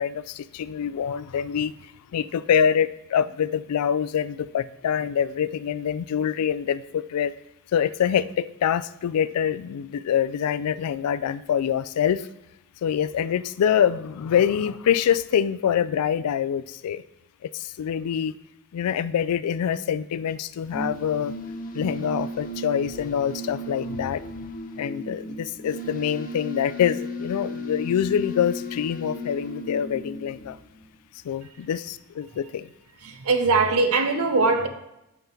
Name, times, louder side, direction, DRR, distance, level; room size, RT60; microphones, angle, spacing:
voice 1, 0.0-1.7 2.1-7.3 7.7-12.3 12.8-17.0 17.5-18.3 18.7-21.3 21.7-24.5 24.8-30.6 31.2-32.7, left 8 dB, 85° left, 0.3 m, -25 dB
sound 1, 20.5-31.0, left 1 dB, 40° left, 0.7 m, -35 dB
voice 2, 33.0-34.7, right 3 dB, 70° right, 0.7 m, -21 dB
5.6 x 5.3 x 4.4 m
head